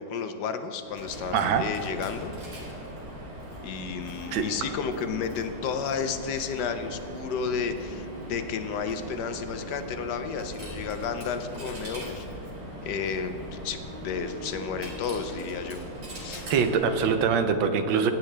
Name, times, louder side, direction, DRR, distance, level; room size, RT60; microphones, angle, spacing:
voice 1, 0.0-2.3 3.6-12.3 12.8-15.8 16.1-16.5, left 6 dB, 70° left, 8 dB, 1.1 m, -32 dB
Coin (dropping), 0.8-17.4, right 1 dB, 60° right, 2.7 m, -40 dB
voice 2, 1.3-1.6 4.3-4.5 16.5-18.1, right 6 dB, 85° right, 8 dB, 1.5 m, -23 dB
16.5 x 9.1 x 3.3 m, 2.9 s
omnidirectional pair, 2.1 m